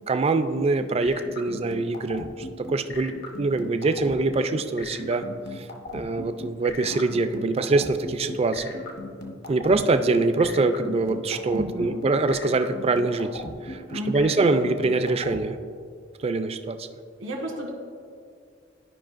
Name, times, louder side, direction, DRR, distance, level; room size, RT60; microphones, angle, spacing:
voice 1, 0.1-5.3 5.5-5.7 5.9-8.8 9.5-15.6 16.2-16.9, right 3 dB, 30° right, 9 dB, 0.4 m, -24 dB
sound 1, 0.5-15.4, left 2 dB, 55° left, 0.9 m, -37 dB
voice 2, 11.5-12.0 13.9-14.3 17.2-17.7, equal, 85° right, 0 dB, 1.6 m, -32 dB
13.0 x 5.1 x 2.5 m, 2.2 s
head